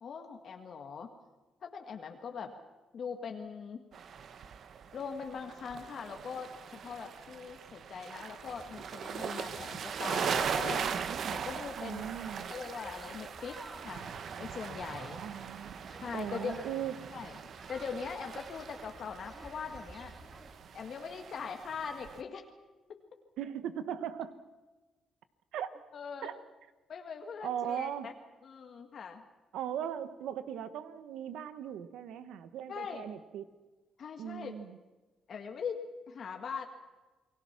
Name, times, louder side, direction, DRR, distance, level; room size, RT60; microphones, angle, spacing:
voice 1, 0.0-1.1 1.6-2.6 2.9-3.9 4.9-10.9 11.3-12.0 12.5-14.1 14.4-15.2 16.0-16.6 17.1-17.4 17.7-20.1 20.7-22.5 22.9-23.0 25.9-26.3 26.9-28.1 28.4-29.2 32.7-33.1 34.0-34.5 35.3-36.7, left 6 dB, 55° left, 4 dB, 1.9 m, -41 dB
sound 1, 3.9-22.2, right 7 dB, 60° right, 1.3 m, -40 dB
sound 2, 8.4-20.5, right 1 dB, 20° right, 3.3 m, -52 dB
voice 2, 11.8-12.5 15.2-15.8 16.1-16.9 23.4-24.4 25.5-25.7 26.2-26.4 27.4-28.1 29.5-33.4 34.2-34.8, right 9 dB, 85° right, 12 dB, 1.4 m, -38 dB
29.5 x 20.5 x 6.0 m, 1.2 s
cardioid pair, 90°, 0 cm